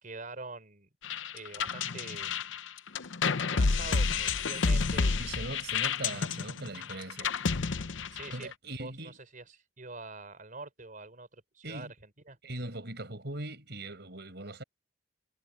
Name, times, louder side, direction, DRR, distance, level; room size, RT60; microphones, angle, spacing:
voice 1, 0.0-0.9 1.3-2.3 3.4-5.4 8.1-12.4, right 3 dB, 45° right, 4.6 m, -45 dB
sound 1, 1.0-8.5, left 4 dB, 85° left, 0.8 m, -30 dB
voice 2, 5.2-7.3 8.3-9.2 11.6-11.9 12.4-14.6, right 2 dB, 60° right, 6.0 m, -40 dB
head